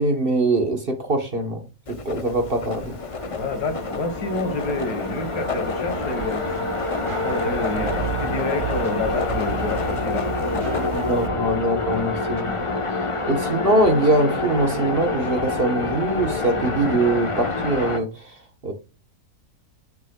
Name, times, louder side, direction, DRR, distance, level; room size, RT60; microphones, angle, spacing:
voice 1, 0.0-2.9 10.9-12.5 13.2-18.3 18.6-18.7, right 2 dB, 40° right, 1.2 m, -22 dB
Writing, 1.9-11.3, left 4 dB, 60° left, 0.3 m, -34 dB
sound 1, 2.4-18.0, left 3 dB, 25° left, 0.7 m, -27 dB
voice 2, 3.4-6.4 7.1-10.9, left 2 dB, 80° left, 2.0 m, -29 dB
sound 2, 5.9-12.4, right 10 dB, 70° right, 0.5 m, -34 dB
8.1 x 6.1 x 2.3 m
omnidirectional pair, 1.7 m